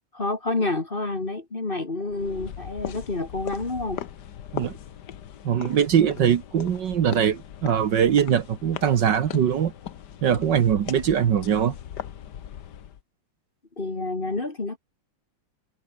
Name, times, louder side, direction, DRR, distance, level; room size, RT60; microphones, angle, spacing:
voice 1, 0.1-4.0 13.8-14.8, left 2 dB, 25° left, 1.9 m, -28 dB
sound 1, 2.1-13.0, left 9 dB, 55° left, 1.6 m, -39 dB
voice 2, 5.4-9.7 10.2-11.7, right 8 dB, 60° right, 1.7 m, -22 dB
omnidirectional pair, 2.4 m